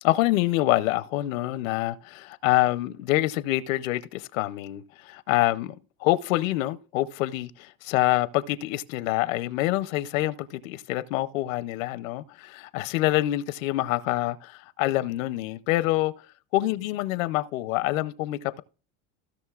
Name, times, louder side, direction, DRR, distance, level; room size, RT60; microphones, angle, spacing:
voice 1, 0.0-5.7 6.0-16.1 16.5-18.6, left 17 dB, 75° left, 0.7 m, -26 dB
16.0 x 6.2 x 2.4 m
supercardioid pair, 160°, 40 cm